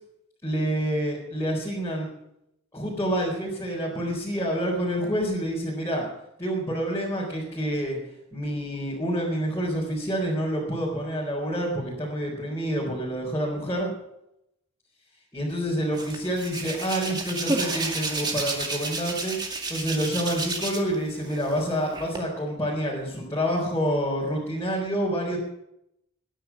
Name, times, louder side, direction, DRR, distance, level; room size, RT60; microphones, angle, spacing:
voice 1, 0.4-2.1 2.7-6.1 6.4-8.0 8.3-13.9 15.3-19.4 19.7-25.4, equal, 15° left, -6 dB, 4.1 m, -28 dB
Hands, 16.0-21.0 21.3-22.2, right 3 dB, 20° right, 2.2 m, -31 dB
20.5 x 10.0 x 6.0 m, 0.80 s
head